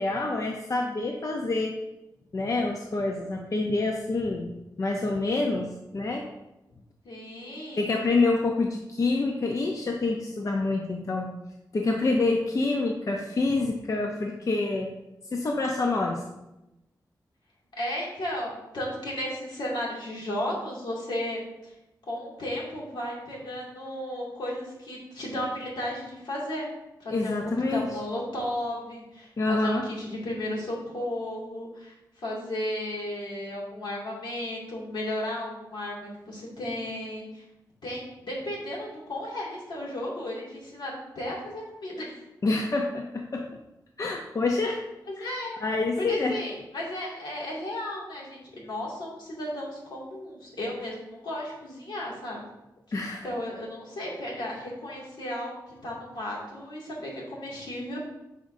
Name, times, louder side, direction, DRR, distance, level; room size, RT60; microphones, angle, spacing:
voice 1, 0.0-1.7 2.3-4.5 4.8-5.7 5.9-6.3 7.8-11.3 11.7-14.9 15.3-16.2 27.1-27.8 29.4-29.8 42.4-43.4 44.0-44.8 45.2-45.3 45.6-46.3 52.9-53.2, left 3 dB, 45° left, 1 dB, 0.6 m, -27 dB
voice 2, 7.0-7.9 17.8-21.7 22.0-26.7 27.0-27.4 27.7-37.4 37.8-42.2 45.2-45.6 46.0-52.4 53.2-55.5 55.8-58.0, left 1 dB, 80° left, -4 dB, 2.2 m, -34 dB
9.2 x 5.1 x 2.6 m, 0.93 s
wide cardioid pair, 120°, 8 cm